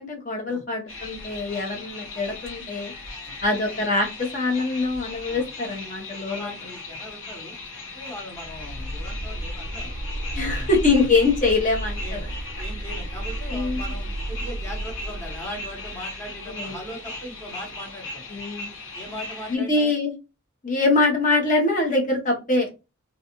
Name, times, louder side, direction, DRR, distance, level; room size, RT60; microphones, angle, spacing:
voice 1, 0.0-2.9 3.4-6.5 10.3-12.3 13.5-13.9 16.5-16.8 18.3-18.7 19.5-20.1 20.6-22.9, left 3 dB, 40° left, 0 dB, 0.9 m, -24 dB
sound 1, 0.9-19.6, left 2 dB, 80° left, 1.0 m, -38 dB
voice 2, 6.3-7.6 7.9-9.9 10.3-10.7 12.0-12.2 12.6-18.2 18.9-19.9, equal, 15° left, -2 dB, 1.0 m, -39 dB
sound 2, 8.4-17.3, right 1 dB, 40° right, 0.3 m, -33 dB
2.5 x 2.3 x 2.9 m, 0.27 s
head